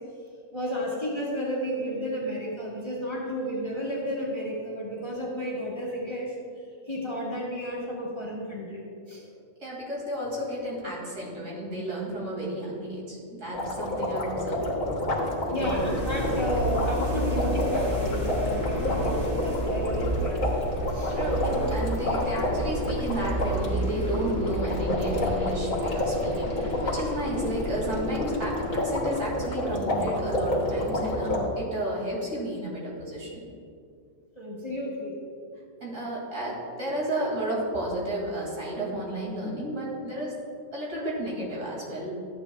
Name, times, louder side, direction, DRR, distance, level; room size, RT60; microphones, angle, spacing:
voice 1, 0.5-6.4 6.9-9.3 15.5-20.6 20.9-21.2 34.4-35.1, equal, 20° left, -6 dB, 1.6 m, -32 dB
voice 2, 9.6-14.6 15.5-15.8 21.1-33.4 35.8-40.3 40.7-42.1, right 1 dB, 65° right, -4 dB, 2.7 m, -32 dB
sound 1, 13.5-31.4, left 1 dB, 75° left, 1.8 m, -29 dB
sound 2, 15.5-29.4, right 1 dB, 40° right, 2.0 m, -32 dB
13.0 x 8.8 x 2.3 m, 2.3 s
omnidirectional pair, 1.4 m